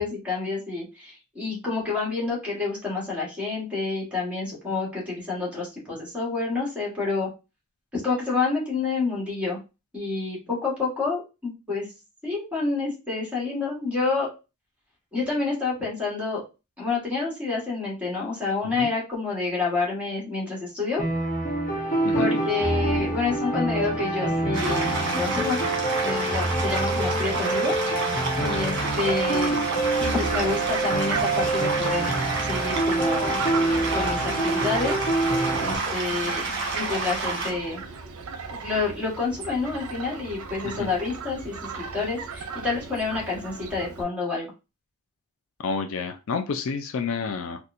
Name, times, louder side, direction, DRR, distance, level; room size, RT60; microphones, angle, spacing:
voice 1, 0.0-7.3 7.9-9.6 9.9-11.9 12.2-14.3 15.1-16.4 16.8-21.0 22.1-25.6 26.0-28.1 28.4-29.6 30.0-32.0 32.5-33.4 33.9-35.0 35.6-37.8 38.5-44.5, left 4 dB, 5° right, -5 dB, 1.6 m, -28 dB
sound 1, 21.0-35.8, right 2 dB, 35° left, 1.0 m, -26 dB
sound 2, 24.5-37.5, right 3 dB, 55° right, 1.1 m, -30 dB
Fowl, 28.5-44.0, right 5 dB, 75° right, 0.6 m, -38 dB
voice 2, 45.6-47.6, left 5 dB, 65° left, 7 dB, 0.4 m, -29 dB
4.1 x 2.3 x 2.6 m, 0.28 s
head